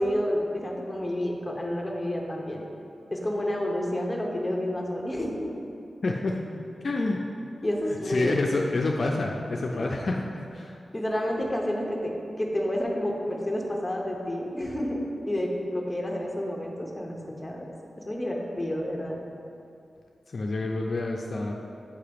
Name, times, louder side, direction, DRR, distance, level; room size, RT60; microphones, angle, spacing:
voice 1, 0.0-2.6 3.1-5.6 7.6-8.6 9.7-9.9 10.9-17.7 18.0-19.2, left 1 dB, 10° left, -1 dB, 0.8 m, -30 dB
voice 2, 6.0-6.4 6.8-7.2 8.1-10.8 20.3-21.5, left 2 dB, 50° left, 0 dB, 0.4 m, -28 dB
8.4 x 2.9 x 5.0 m, 2.5 s
wide cardioid pair, 155°, 0 cm